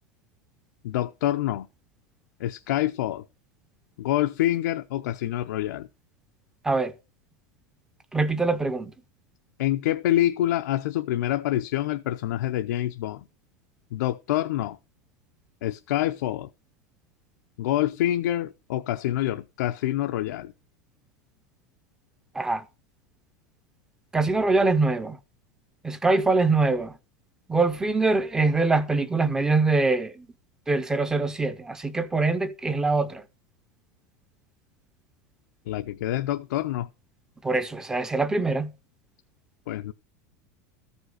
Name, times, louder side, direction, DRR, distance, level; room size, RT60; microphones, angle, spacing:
voice 1, 0.8-1.7 2.4-3.2 4.0-5.9 9.6-13.2 13.9-14.8 15.6-16.5 17.6-20.5 35.7-36.9 39.7-39.9, left 13 dB, 80° left, 0.6 m, -26 dB
voice 2, 8.1-8.9 22.4-22.6 24.1-25.2 25.8-26.9 27.5-30.3 30.7-33.2 37.4-38.7, right 3 dB, 5° right, 0.5 m, -23 dB
14.0 x 5.2 x 6.3 m
supercardioid pair, 175°, 9 cm